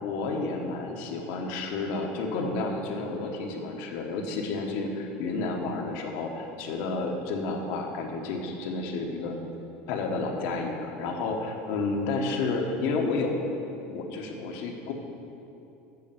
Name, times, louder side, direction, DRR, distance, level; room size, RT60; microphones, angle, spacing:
voice 1, 0.0-9.4 9.9-13.4 13.9-14.9, left 3 dB, 65° left, 2 dB, 1.3 m, -31 dB
8.3 x 6.5 x 7.0 m, 2.8 s
cardioid pair, 150°, 5 cm